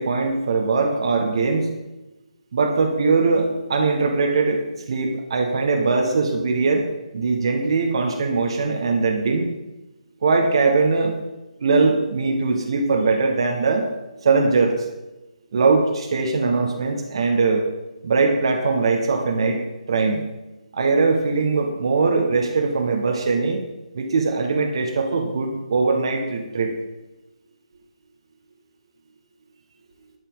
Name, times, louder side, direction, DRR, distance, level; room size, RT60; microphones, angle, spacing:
voice 1, 0.0-1.7 2.5-6.9 7.1-9.5 10.2-11.2 11.6-13.9 14.2-14.9 15.5-17.6 18.0-19.6 19.9-20.3 20.7-23.6 23.9-26.7, right 4 dB, 45° right, 2 dB, 1.5 m, -21 dB
11.5 x 6.6 x 7.2 m, 1.0 s
figure-of-eight pair, 145°, 4 cm